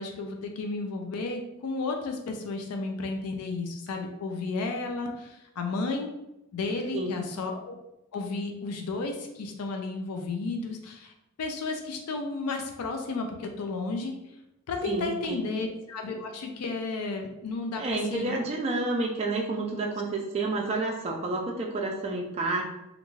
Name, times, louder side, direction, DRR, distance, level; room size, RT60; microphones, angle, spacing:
voice 1, 0.0-6.1 6.5-7.7 8.1-11.1 11.4-14.1 14.7-18.4, left 3 dB, 90° left, 3 dB, 0.4 m, -33 dB
voice 2, 14.8-15.5 17.8-22.6, right 2 dB, 30° right, -1 dB, 0.3 m, -30 dB
2.5 x 2.3 x 3.1 m, 0.91 s
head